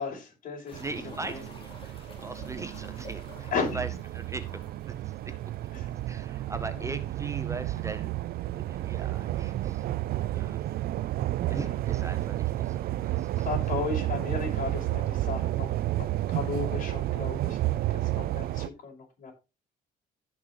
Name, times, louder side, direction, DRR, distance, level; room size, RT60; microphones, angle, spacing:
voice 1, 0.0-1.4 3.5-3.8 5.7-5.9 6.7-7.0 11.5-11.8 13.4-19.3, left 5 dB, 55° left, 1 dB, 5.4 m, -35 dB
sound 1, 0.7-6.0 6.3-6.4 6.8-6.9 9.6-9.7 11.4-11.5 12.3-12.4 12.6-12.7 13.6-13.7 13.9-14.5 15.5-15.6, left 2 dB, 35° left, 3.6 m, -51 dB
sound 2, 0.7-18.7, right 15 dB, 65° right, 0.5 m, -31 dB
voice 2, 0.8-3.9 4.1-5.3 6.1-8.1 8.5-9.9 10.3-10.8 11.4-13.5, right 3 dB, 15° right, 11 dB, 0.8 m, -40 dB
15.5 x 6.2 x 3.1 m, 0.28 s
cardioid pair, 110°, 17 cm